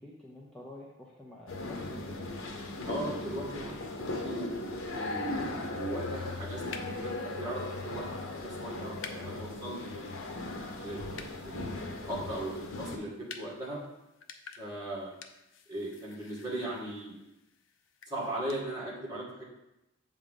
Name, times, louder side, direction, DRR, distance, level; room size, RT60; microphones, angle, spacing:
voice 1, 0.0-2.2, left 1 dB, 5° left, -6 dB, 0.7 m, -49 dB
sound 1, 1.5-13.0, left 2 dB, 85° left, 0.9 m, -38 dB
voice 2, 2.9-10.2 10.7-13.8 14.6-15.1 15.7-17.2 18.1-19.5, right 1 dB, 20° right, -7 dB, 2.2 m, -39 dB
sound 2, 6.1-18.6, left 5 dB, 65° left, 0.6 m, -52 dB
7.8 x 3.7 x 5.4 m, 0.93 s
head